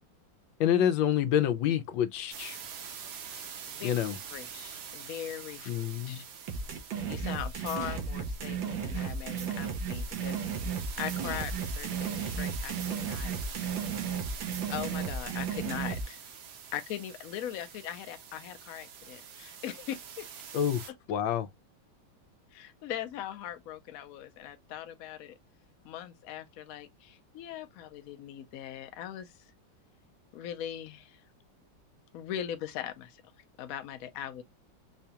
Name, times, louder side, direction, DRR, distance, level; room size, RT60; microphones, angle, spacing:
voice 1, 0.6-2.6 3.3-3.4 3.8-4.2 5.7-6.2 20.5-21.5, left 10 dB, 85° left, 1.4 m, -28 dB
sound 1, 2.3-20.9, right 7 dB, 65° right, 1.2 m, -45 dB
voice 2, 4.3-5.7 6.1-6.3 7.1-10.4 11.0-13.4 14.7-16.2 16.7-20.3 22.5-25.3 25.8-29.5 30.3-31.2 32.1-33.2 33.6-34.4, left 11 dB, 65° left, 0.9 m, -40 dB
sound 2, 6.5-16.0, right 6 dB, 90° right, 1.6 m, -34 dB
4.9 x 2.3 x 2.7 m
omnidirectional pair, 2.1 m